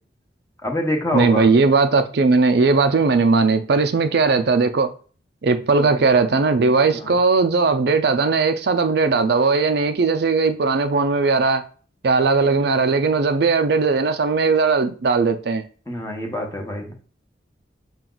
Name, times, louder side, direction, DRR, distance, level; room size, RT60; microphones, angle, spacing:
voice 1, 0.6-1.4 5.8-6.0 6.9-7.1 15.9-16.9, left 1 dB, 15° left, 1.0 m, -26 dB
voice 2, 1.1-4.9 5.4-11.6 12.0-15.6, right 4 dB, 60° right, 0.5 m, -18 dB
6.0 x 2.3 x 3.8 m
head